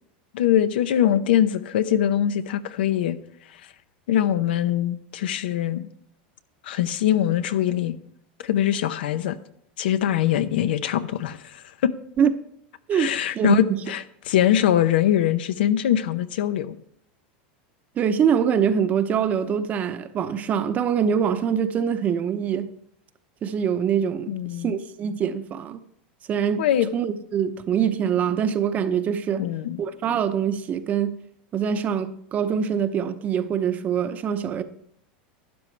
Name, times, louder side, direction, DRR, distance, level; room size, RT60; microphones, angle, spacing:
voice 1, 0.3-3.2 4.1-5.9 6.6-7.9 8.4-9.4 9.8-11.9 12.9-16.7 24.3-24.8 26.6-26.9 29.4-29.8, left 11 dB, 85° left, 0.8 m, -22 dB
voice 2, 13.3-13.8 18.0-22.7 23.4-24.3 24.6-25.8 26.3-26.7 26.9-29.4 29.8-31.2 31.5-34.6, right 8 dB, 30° right, 0.8 m, -24 dB
12.5 x 9.4 x 3.3 m
supercardioid pair, 140°, 5 cm